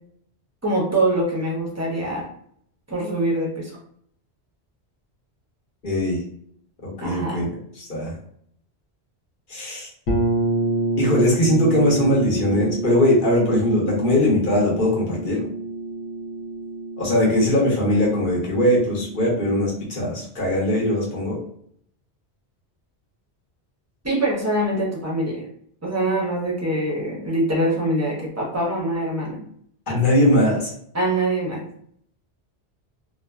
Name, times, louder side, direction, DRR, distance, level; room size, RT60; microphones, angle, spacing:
voice 1, 0.6-2.3 2.9-3.8 7.0-7.5 24.0-25.5 25.8-29.4 30.9-31.6, right 1 dB, 20° right, -3 dB, 0.5 m, -24 dB
voice 2, 5.8-6.2 6.8-7.4 7.8-8.1 9.5-9.9 11.0-15.5 17.0-21.4 29.9-30.7, left 1 dB, 55° left, -5 dB, 1.1 m, -20 dB
sound 1, 10.1-19.7, right 3 dB, 85° left, 1.0 m, -28 dB
2.5 x 2.4 x 2.2 m, 0.66 s
omnidirectional pair, 1.1 m